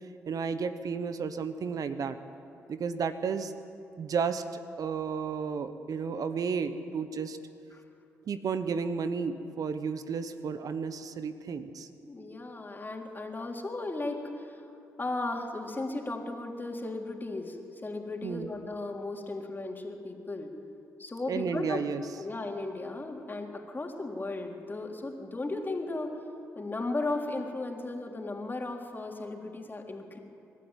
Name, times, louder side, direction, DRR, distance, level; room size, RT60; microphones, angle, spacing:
voice 1, 0.3-2.2 2.7-3.5 4.0-7.4 8.2-11.9 18.2-18.5 21.3-22.0, right 6 dB, 60° right, 11 dB, 1.1 m, -32 dB
voice 2, 12.0-14.7 15.0-20.5 21.0-21.8 22.2-26.1 26.6-30.2, left 2 dB, 30° left, 1 dB, 3.6 m, -36 dB
25.5 x 12.0 x 9.1 m, 2.6 s
hypercardioid pair, 45°, 7 cm